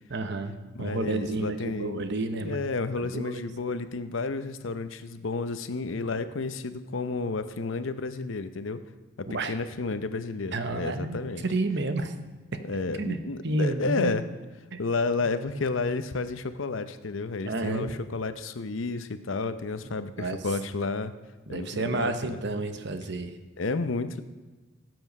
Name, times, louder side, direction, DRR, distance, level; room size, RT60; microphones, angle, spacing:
voice 1, 0.1-2.7 3.1-3.4 9.3-9.5 10.5-11.2 11.4-12.1 13.0-13.2 13.4-14.2 14.7-14.8 17.5-18.0 20.2-20.4 21.5-23.3, right 2 dB, 60° right, 8 dB, 1.0 m, -30 dB
voice 2, 0.7-2.0 2.4-8.8 9.2-11.4 12.6-14.2 14.8-21.1 21.5-22.4 23.6-24.2, left 3 dB, 75° left, 11 dB, 0.7 m, -31 dB
17.5 x 7.9 x 5.4 m, 1.2 s
head